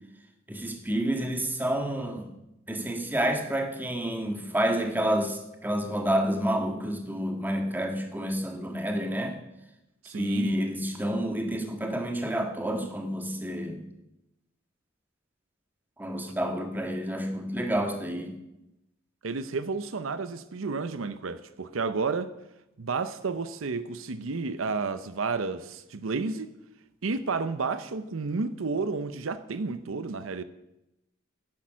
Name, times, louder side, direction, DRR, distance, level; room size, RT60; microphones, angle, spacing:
voice 1, 0.5-2.3 2.7-9.4 10.1-13.8 16.0-18.4, right 1 dB, 10° right, 1.6 m, -29 dB
voice 2, 10.0-10.6 19.2-22.3 22.8-26.5 27.0-30.4, right 4 dB, 80° right, 0.7 m, -31 dB
10.5 x 10.0 x 6.2 m
head